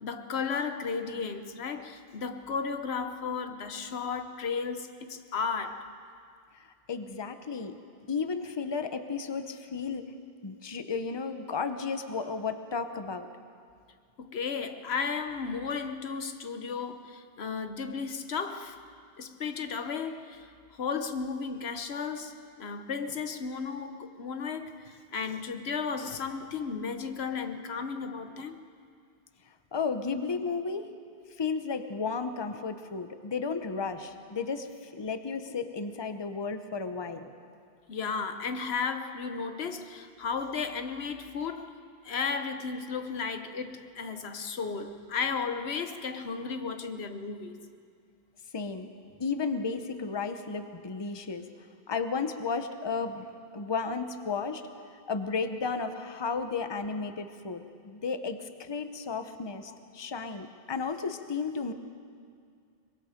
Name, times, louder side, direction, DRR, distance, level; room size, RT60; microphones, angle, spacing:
voice 1, 0.0-5.9 14.2-18.8 19.2-28.6 37.9-41.8 42.0-47.6, left 5 dB, 85° left, 1.3 m, -34 dB
voice 2, 6.5-7.8 8.0-10.1 10.4-13.3 29.7-30.9 31.4-37.3 48.5-51.5 51.9-53.3 53.5-54.7 55.1-61.7, left 5 dB, 25° left, 0.8 m, -33 dB
23.5 x 22.0 x 5.1 m
omnidirectional pair, 1.0 m